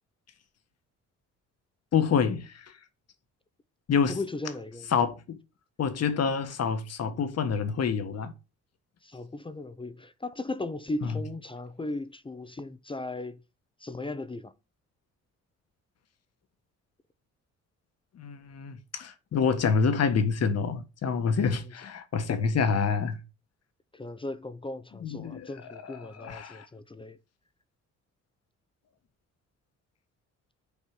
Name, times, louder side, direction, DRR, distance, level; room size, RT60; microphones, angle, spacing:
voice 1, 1.9-2.7 3.9-4.2 4.9-5.4 5.8-8.3 11.0-11.2 18.2-23.2 25.0-26.7, left 6 dB, 55° left, 1.5 m, -27 dB
voice 2, 4.1-4.9 9.0-13.4 13.8-14.5 21.6-21.7 23.9-27.2, left 2 dB, 15° left, 0.7 m, -37 dB
7.1 x 4.4 x 6.1 m
cardioid pair, 90°, 30 cm